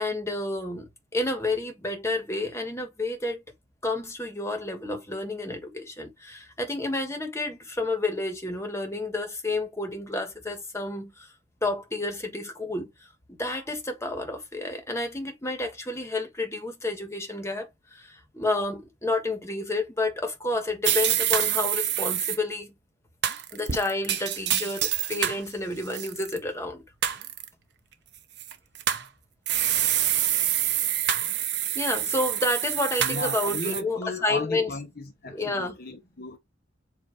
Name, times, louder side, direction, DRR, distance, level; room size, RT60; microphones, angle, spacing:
voice 1, 0.0-3.4 3.8-11.3 11.6-12.9 13.4-22.7 23.5-26.8 31.7-34.7 35.3-35.8, left 2 dB, 15° left, 1.5 m, -30 dB
sound 1, 20.8-22.4 23.2-25.4 25.9-26.4 27.0-27.5 28.4-29.1 29.5-33.8, right 11 dB, 60° right, 0.9 m, -26 dB
voice 2, 33.0-36.4, left 2 dB, 50° left, 1.1 m, -35 dB
7.7 x 2.9 x 4.6 m
head